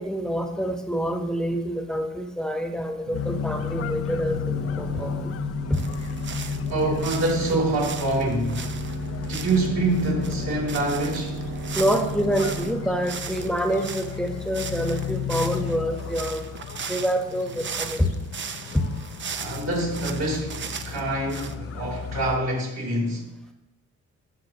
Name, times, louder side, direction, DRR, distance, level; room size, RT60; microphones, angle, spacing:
voice 1, 0.0-5.3 5.7-5.8 11.7-16.4 16.8-18.1 18.7-18.9, equal, ahead, 1.2 m, -26 dB
sound 1, 3.1-22.4, left 9 dB, 50° left, 0.5 m, -34 dB
sound 2, 3.1-14.6, equal, 75° right, 1.3 m, -34 dB
sound 3, 5.7-12.7 13.0-21.6, right 7 dB, 40° right, 0.6 m, -38 dB
voice 2, 6.7-8.7 9.2-11.4 19.3-23.3, right 2 dB, 60° right, 3.4 m, -26 dB
14.0 x 5.9 x 3.0 m
cardioid pair, 90°, 30 cm